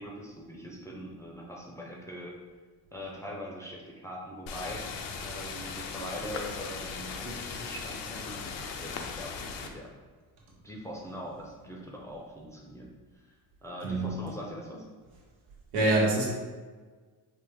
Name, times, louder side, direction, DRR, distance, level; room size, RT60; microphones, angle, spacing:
voice 1, 0.0-2.4 2.9-4.9 5.2-9.9 10.6-13.2 13.6-14.8, equal, 5° left, -3 dB, 0.7 m, -42 dB
sound 1, 4.5-9.7, left 5 dB, 65° left, 0.6 m, -38 dB
voice 2, 15.7-16.3, right 2 dB, 75° right, -4 dB, 1.3 m, -25 dB
4.1 x 2.1 x 3.5 m, 1.4 s
supercardioid pair, 70°, 49 cm